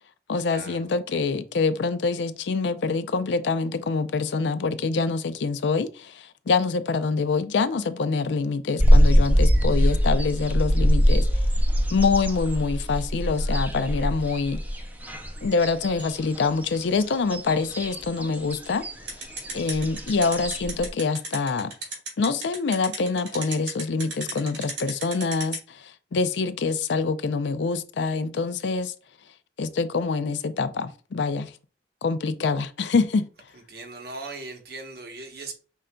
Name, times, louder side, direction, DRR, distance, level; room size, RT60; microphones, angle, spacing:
voice 1, 0.3-11.4 11.9-14.6 15.4-18.8 19.5-21.7 22.2-28.9 29.6-31.5 32.0-33.2, left 4 dB, 75° left, 0.4 m, -25 dB
sound 1, 8.8-20.9, equal, 10° right, 0.5 m, -23 dB
sound 2, 19.1-25.6, right 4 dB, 90° right, 2.0 m, -32 dB
voice 2, 33.7-35.5, right 3 dB, 60° right, 1.0 m, -38 dB
5.4 x 3.7 x 2.2 m
head